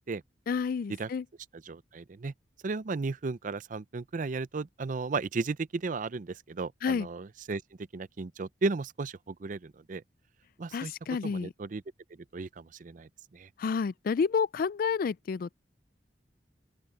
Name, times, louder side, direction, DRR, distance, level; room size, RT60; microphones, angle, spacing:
voice 1, 0.5-1.2 6.8-7.1 10.7-11.5 13.6-15.5, left 5 dB, 55° left, 0.3 m, -29 dB
voice 2, 1.7-2.3 2.6-10.0 10.6-10.9 11.2-11.8 12.3-13.5, right 3 dB, 45° right, 0.5 m, -35 dB
open air
head